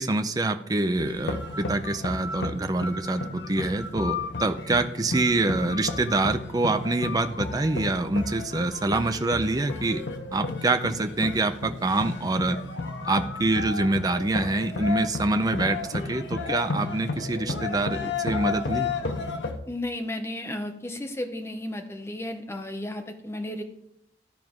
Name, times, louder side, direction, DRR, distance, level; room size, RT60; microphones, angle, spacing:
voice 1, 0.0-12.6 13.0-15.8 16.1-18.9, right 2 dB, 20° right, 8 dB, 0.4 m, -26 dB
sound 1, 1.0-19.6, left 4 dB, 80° left, 0.9 m, -33 dB
voice 2, 19.7-23.6, left 1 dB, 15° left, 4 dB, 0.8 m, -33 dB
13.0 x 4.6 x 3.6 m, 0.76 s
head